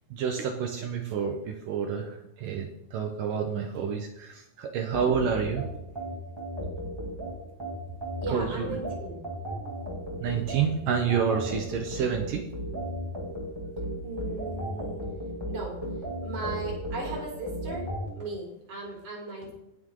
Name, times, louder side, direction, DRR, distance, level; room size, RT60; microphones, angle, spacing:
voice 1, 0.1-5.7 8.3-8.7 10.2-12.4, right 7 dB, 70° right, 3 dB, 2.3 m, -29 dB
sound 1, 4.9-18.1, equal, 10° right, 1.2 m, -35 dB
voice 2, 8.2-9.2 14.0-15.0 15.5-15.8 16.2-17.9 18.1-19.5, right 3 dB, 50° right, -3 dB, 5.3 m, -37 dB
19.0 x 6.5 x 3.8 m, 0.85 s
omnidirectional pair, 4.6 m